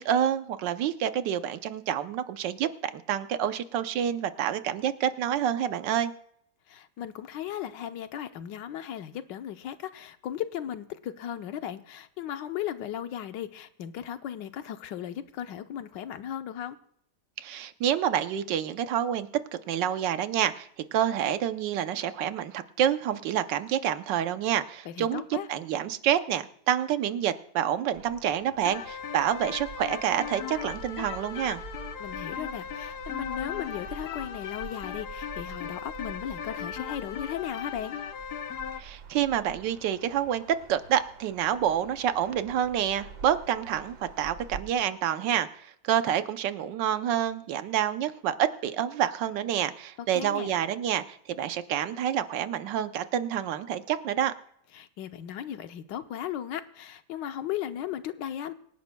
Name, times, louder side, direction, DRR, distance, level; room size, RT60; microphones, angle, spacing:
voice 1, 0.0-6.1 17.4-19.3 19.7-25.2 25.5-31.6 38.8-40.4 40.7-54.3, right 10 dB, 85° right, 11 dB, 1.4 m, -28 dB
voice 2, 6.7-16.8 24.8-25.5 32.0-38.0 50.1-50.5 54.7-58.5, left 10 dB, 85° left, 9 dB, 1.4 m, -36 dB
sound 1, 27.9-44.6, right 5 dB, 65° right, 2.0 m, -47 dB
sound 2, 28.6-38.8, left 8 dB, 70° left, 1.3 m, -38 dB
25.5 x 10.5 x 2.2 m, 0.69 s
omnidirectional pair, 1.9 m